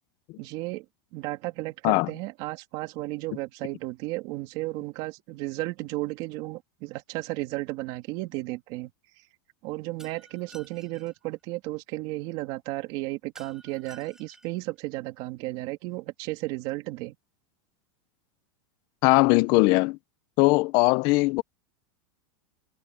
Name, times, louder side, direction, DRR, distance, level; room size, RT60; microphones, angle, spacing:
voice 1, 0.4-0.8 1.1-8.9 9.6-17.2, right 20 dB, 35° right, 2.7 m, -34 dB
Shatter, 10.0-11.1 13.4-14.6, right 2 dB, 5° right, 5.6 m, -52 dB
voice 2, 19.0-20.0 20.4-21.4, left 23 dB, 30° left, 0.5 m, -20 dB
supercardioid pair, 175°, 14 cm